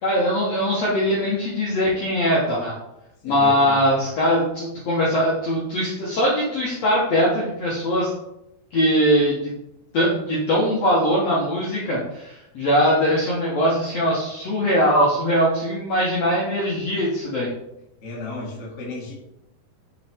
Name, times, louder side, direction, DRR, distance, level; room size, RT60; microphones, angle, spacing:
voice 1, 0.0-2.7 3.2-8.1 8.7-9.5 9.9-17.5, equal, 65° left, -6 dB, 1.7 m, -21 dB
voice 2, 3.2-3.8 18.0-19.1, left 2 dB, 40° left, -4 dB, 1.0 m, -33 dB
7.1 x 5.6 x 3.6 m, 0.87 s
omnidirectional pair, 4.9 m